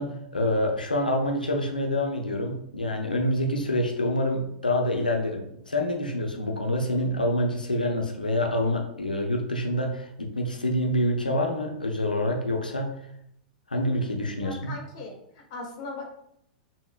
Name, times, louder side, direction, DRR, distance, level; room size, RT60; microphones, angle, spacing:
voice 1, 0.0-12.9 13.7-14.7, left 1 dB, 80° left, 2 dB, 0.6 m, -27 dB
voice 2, 14.4-16.1, left 3 dB, 50° left, 1 dB, 1.1 m, -39 dB
4.8 x 2.8 x 2.4 m, 0.74 s
figure-of-eight pair, 95°, 5 cm